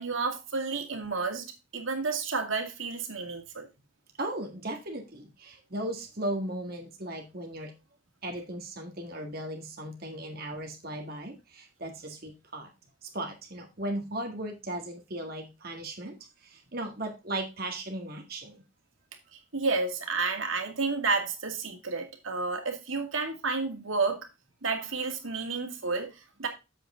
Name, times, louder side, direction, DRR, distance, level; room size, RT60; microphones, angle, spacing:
voice 1, 0.0-3.7 19.5-24.2 24.6-26.5, right 4 dB, 75° right, 4 dB, 2.3 m, -31 dB
voice 2, 4.2-7.7 8.2-12.7 13.0-16.2 16.4-18.6, right 1 dB, 45° right, 3 dB, 1.8 m, -37 dB
8.0 x 7.7 x 3.6 m, 0.26 s
head